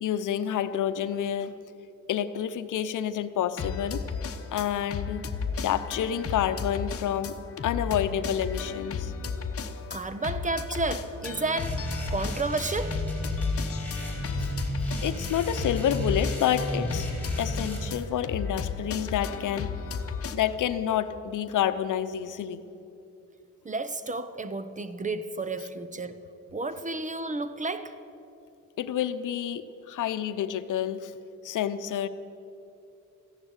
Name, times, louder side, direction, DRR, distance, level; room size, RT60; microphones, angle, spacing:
voice 1, 0.0-1.5 2.1-4.0 4.5-5.3 5.6-7.3 7.6-9.1 14.4-14.5 15.0-17.1 17.3-19.7 20.3-22.6 28.8-31.1 31.4-32.1, left 10 dB, 75° left, 11 dB, 0.8 m, -28 dB
sound 1, 3.6-20.4, left 5 dB, 45° left, 1.0 m, -34 dB
voice 2, 9.9-13.0 23.6-26.2 26.5-28.0, right 3 dB, 25° right, 12 dB, 0.9 m, -32 dB
sound 2, 11.6-17.9, equal, 5° left, 4.6 m, -33 dB
15.0 x 11.0 x 8.0 m, 2.7 s
cardioid pair, 95°, 31 cm